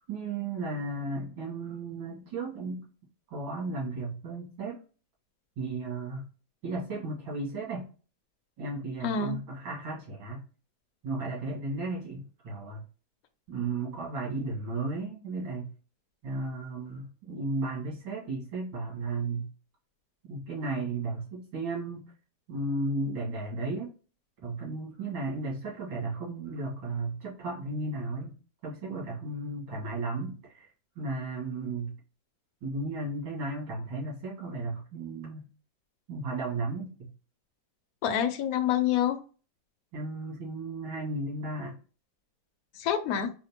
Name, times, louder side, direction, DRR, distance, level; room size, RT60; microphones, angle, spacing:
voice 1, 0.1-2.9 3.3-4.8 5.6-6.3 6.6-7.9 8.6-10.4 11.0-12.8 13.5-15.7 16.2-19.5 20.2-22.1 22.5-23.9 24.4-28.4 28.6-30.7 31.0-32.0 32.6-35.5 36.1-37.1 39.9-41.8, right 2 dB, 90° right, -4 dB, 2.6 m, -34 dB
voice 2, 9.0-9.4 38.0-39.2 42.8-43.3, left 8 dB, 75° left, 7 dB, 0.8 m, -27 dB
4.9 x 2.1 x 2.9 m, 0.36 s
omnidirectional pair, 2.1 m